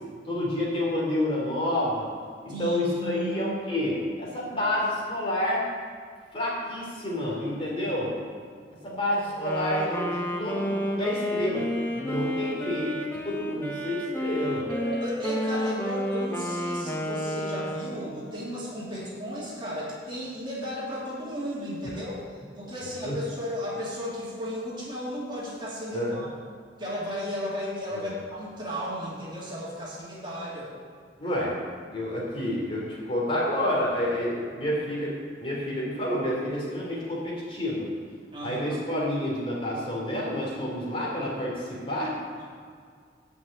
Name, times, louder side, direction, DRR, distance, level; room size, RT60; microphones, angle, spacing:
voice 1, 0.3-2.1 2.4-5.6 6.3-8.1 8.8-11.7 11.9-13.0 13.2-14.7 21.9-22.0 23.0-23.2 25.9-26.2 27.9-28.2 31.2-31.6 31.9-37.9 38.4-42.1, left 1 dB, 30° left, -5 dB, 3.1 m, -29 dB
voice 2, 2.5-3.5 14.7-22.2 22.6-26.3 26.8-30.7 38.3-38.8 42.4-42.5, equal, 25° right, -7 dB, 2.7 m, -34 dB
Wind instrument woodwind instrument, 9.3-18.2, equal, 10° left, 1.1 m, -31 dB
10.5 x 5.9 x 8.5 m, 2.1 s
head